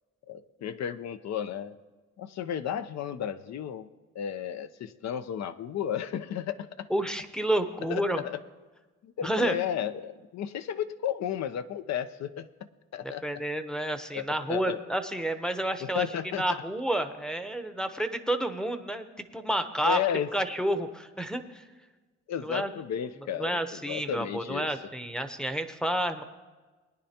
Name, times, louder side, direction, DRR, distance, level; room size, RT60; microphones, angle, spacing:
voice 1, 0.3-1.8 2.2-3.9 4.1-6.9 7.9-8.4 9.0-12.5 12.9-13.2 14.1-14.8 15.8-16.5 19.8-20.3 22.3-24.7, left 9 dB, 60° left, 12 dB, 0.6 m, -33 dB
voice 2, 6.9-8.2 9.2-9.5 13.0-16.1 16.4-19.1 19.3-20.0 20.3-21.6 22.4-22.7 23.4-26.2, right 1 dB, ahead, 7 dB, 0.8 m, -30 dB
21.0 x 9.8 x 2.9 m, 1.3 s
cardioid pair, 90°, 30 cm